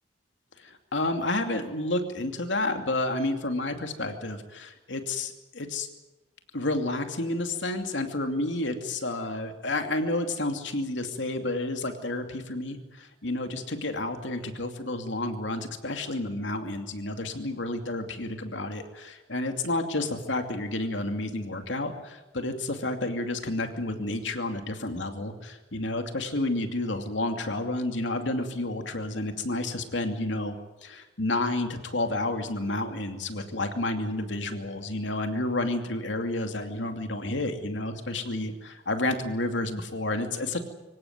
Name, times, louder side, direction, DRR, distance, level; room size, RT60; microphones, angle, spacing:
voice 1, 0.6-5.9 6.5-30.5 30.8-40.6, left 2 dB, 75° left, 6 dB, 2.6 m, -30 dB
25.5 x 17.0 x 9.5 m, 1.1 s
head